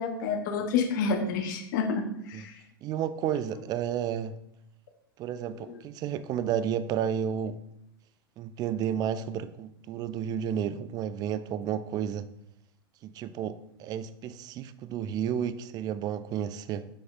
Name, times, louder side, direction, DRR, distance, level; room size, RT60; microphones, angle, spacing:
voice 1, 0.0-2.5 5.5-5.6, left 5 dB, 55° left, 5 dB, 1.2 m, -29 dB
voice 2, 2.8-4.4 5.2-7.6 8.4-12.3 13.0-16.9, right 9 dB, 30° right, 14 dB, 0.5 m, -32 dB
7.6 x 6.8 x 2.7 m, 0.77 s
figure-of-eight pair, 90°, 13 cm